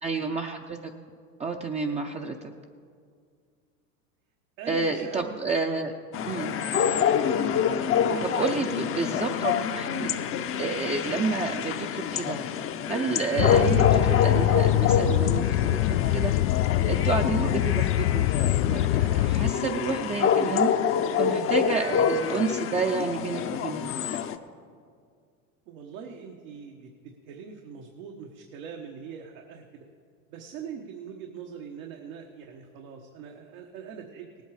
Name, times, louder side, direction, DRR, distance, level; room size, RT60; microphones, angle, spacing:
voice 1, 0.0-0.9 1.4-2.5 4.7-5.9 6.2-6.6 8.2-10.2 10.6-12.4 12.9-16.5 16.8-20.7 21.2-23.9, right 4 dB, 15° right, 2 dB, 0.6 m, -30 dB
voice 2, 4.6-5.3 5.6-5.9 7.7-8.7 9.3-9.6 25.7-29.8 30.3-34.3, right 7 dB, 70° right, 2 dB, 1.3 m, -42 dB
sound 1, 6.1-24.4, left 7 dB, 30° left, 0.7 m, -27 dB
sound 2, 13.4-19.5, left 15 dB, 70° left, 0.5 m, -23 dB
17.5 x 8.3 x 4.9 m, 2.1 s
hypercardioid pair, 100°, 41 cm